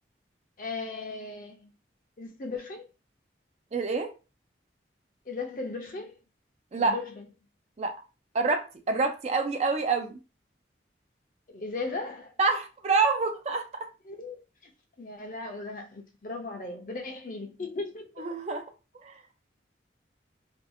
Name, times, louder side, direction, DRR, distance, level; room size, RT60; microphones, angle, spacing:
voice 1, 0.6-1.7 2.2-2.9 5.3-6.1 6.8-7.2 11.5-12.3 14.1-14.4 15.0-18.3, left 3 dB, 45° left, 0.5 m, -37 dB
voice 2, 3.7-4.1 6.7-7.0 7.8-7.9 8.3-10.2 12.4-13.6 18.2-18.6 19.0-19.2, right 4 dB, 35° right, 0.3 m, -27 dB
2.6 x 2.4 x 2.6 m
head